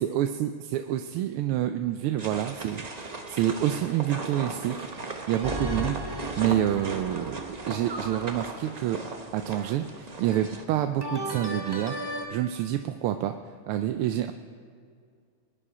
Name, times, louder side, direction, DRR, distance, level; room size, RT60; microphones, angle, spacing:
voice 1, 0.0-4.8 5.3-9.0 9.3-12.0 12.3-13.3 13.7-14.3, right 12 dB, 85° right, 7 dB, 1.5 m, -28 dB
sound 1, 2.2-10.6, right 3 dB, 55° right, 0.4 m, -37 dB
sound 2, 5.4-8.5 11.0-12.3, right 1 dB, 20° right, 0.7 m, -36 dB
22.5 x 10.0 x 4.9 m, 2.2 s
omnidirectional pair, 2.4 m